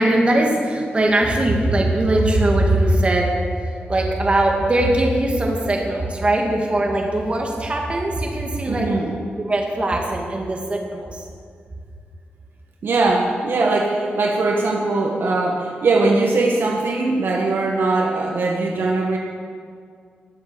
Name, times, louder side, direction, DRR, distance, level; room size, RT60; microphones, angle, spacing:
voice 1, 0.0-8.9 9.4-11.3, right 1 dB, 30° right, 0 dB, 2.5 m, -20 dB
voice 2, 8.7-9.1 12.8-19.2, right 3 dB, 65° right, 0 dB, 1.7 m, -20 dB
20.0 x 7.5 x 7.2 m, 2.1 s
wide cardioid pair, 105°, 4 cm